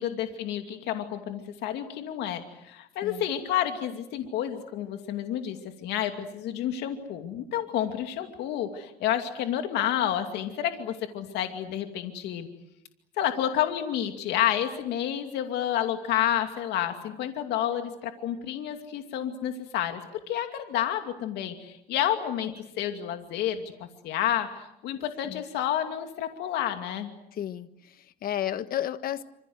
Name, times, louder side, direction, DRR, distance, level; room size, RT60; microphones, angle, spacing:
voice 1, 0.0-12.5 13.2-20.0 20.3-27.1, left 11 dB, 85° left, 6 dB, 2.6 m, -30 dB
voice 2, 27.3-29.2, left 11 dB, 60° left, 12 dB, 1.5 m, -33 dB
27.0 x 26.5 x 8.0 m, 0.80 s
cardioid pair, 110°, 17 cm